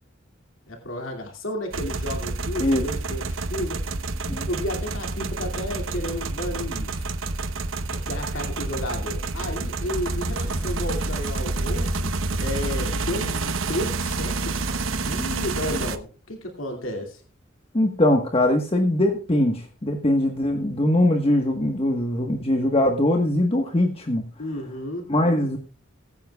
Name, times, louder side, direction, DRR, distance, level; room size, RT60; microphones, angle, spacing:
voice 1, 0.7-3.8 4.5-7.0 8.1-12.1 12.4-17.2 24.4-25.1, left 1 dB, 85° left, 1 dB, 2.6 m, -32 dB
sound 1, 1.7-16.0, right 3 dB, 85° right, 1.0 m, -28 dB
voice 2, 17.7-24.2 25.1-25.6, left 1 dB, 30° left, 3 dB, 1.4 m, -21 dB
21.0 x 9.3 x 2.4 m, 0.36 s
head